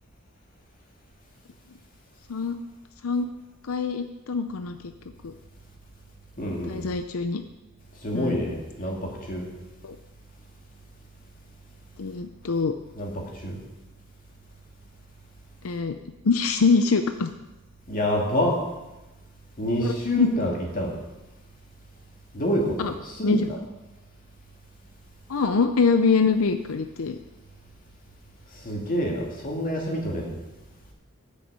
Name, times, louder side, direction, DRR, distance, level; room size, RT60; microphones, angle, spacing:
voice 1, 3.6-4.8 5.2-5.3 6.7-7.4 8.1-8.4 9.8-10.0 12.0-12.7 15.6-16.0 16.2-17.3 19.8-20.3 22.8-22.9 23.2-23.4 25.3-27.2, left 4 dB, 90° left, 8 dB, 0.6 m, -24 dB
voice 2, 6.4-6.9 8.0-9.5 12.9-13.6 17.9-18.6 19.6-21.0 22.3-23.6 28.6-30.3, equal, 40° left, 0 dB, 2.4 m, -27 dB
9.7 x 6.5 x 8.0 m, 1.0 s
head